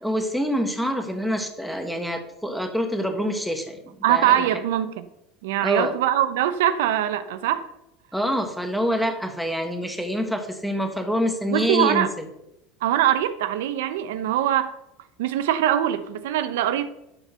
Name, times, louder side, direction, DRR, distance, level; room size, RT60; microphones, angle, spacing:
voice 1, 0.0-3.8 4.1-4.5 5.6-5.9 8.1-12.3, equal, ahead, 1.5 m, -26 dB
voice 2, 4.0-5.0 5.4-7.7 11.5-12.1 12.8-14.7 15.2-16.9, right 11 dB, 85° right, 0.8 m, -22 dB
12.0 x 4.6 x 6.7 m
supercardioid pair, 125°, 0 cm